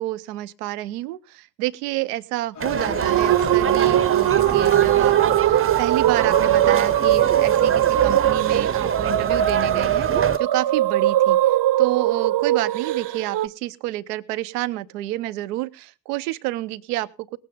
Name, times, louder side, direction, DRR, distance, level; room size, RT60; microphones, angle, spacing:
voice 1, 0.0-11.4 11.8-17.4, right 17 dB, 90° right, 14 dB, 0.7 m, -29 dB
Organ, 2.5-8.2, left 6 dB, 40° left, 1.5 m, -39 dB
sound 1, 2.6-10.4, right 7 dB, 30° right, 0.7 m, -25 dB
sound 2, 3.0-13.5, right 13 dB, 60° right, 0.9 m, -20 dB
19.0 x 8.8 x 3.8 m, 0.30 s
hypercardioid pair, 45°, 45 cm